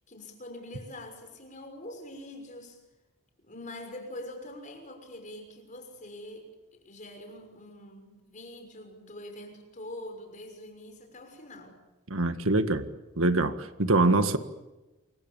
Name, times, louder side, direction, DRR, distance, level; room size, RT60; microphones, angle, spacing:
voice 1, 0.1-2.8 3.4-11.8, left 1 dB, 35° left, 5 dB, 6.2 m, -44 dB
voice 2, 12.1-12.8 13.2-14.4, right 2 dB, 65° right, 9 dB, 1.8 m, -24 dB
29.0 x 25.0 x 7.2 m, 1.1 s
head